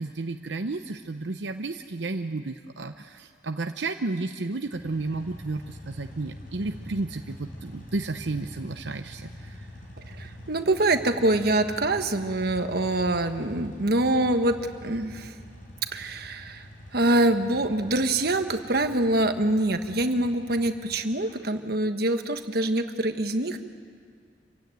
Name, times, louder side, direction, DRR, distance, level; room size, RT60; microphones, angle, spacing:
voice 1, 0.0-9.7, right 3 dB, 85° right, 6 dB, 0.7 m, -32 dB
sound 1, 4.7-21.3, equal, 50° left, 5.0 m, -45 dB
voice 2, 10.1-14.5 14.8-15.3 15.9-16.6 16.9-23.6, right 1 dB, 60° right, 7 dB, 1.4 m, -25 dB
27.0 x 16.0 x 9.3 m, 2.1 s
head